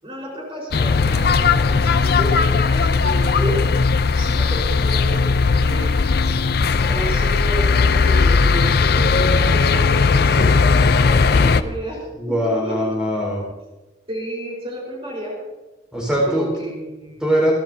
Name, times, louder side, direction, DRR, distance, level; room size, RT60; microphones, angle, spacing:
voice 1, 0.0-1.8 2.2-3.6 4.1-5.9 6.8-12.8 14.1-15.4 16.2-17.2, equal, 30° right, -3 dB, 4.7 m, -31 dB
sound 1, 0.7-11.6, left 4 dB, 60° left, 0.5 m, -17 dB
voice 2, 12.2-13.4 15.9-16.4 17.2-17.5, equal, 5° right, -4 dB, 4.7 m, -21 dB
28.0 x 12.0 x 2.8 m, 1.1 s
head